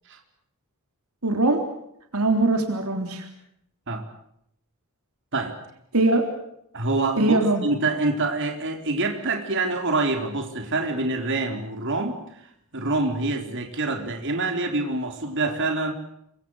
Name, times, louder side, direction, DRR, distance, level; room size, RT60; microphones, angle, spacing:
voice 1, 1.2-1.6 2.1-3.3 5.9-6.3 7.2-7.7, right 2 dB, 75° right, 4 dB, 3.6 m, -21 dB
voice 2, 6.7-12.4 12.7-15.9, right 2 dB, 55° right, 4 dB, 4.2 m, -26 dB
28.0 x 24.5 x 6.6 m, 0.74 s
head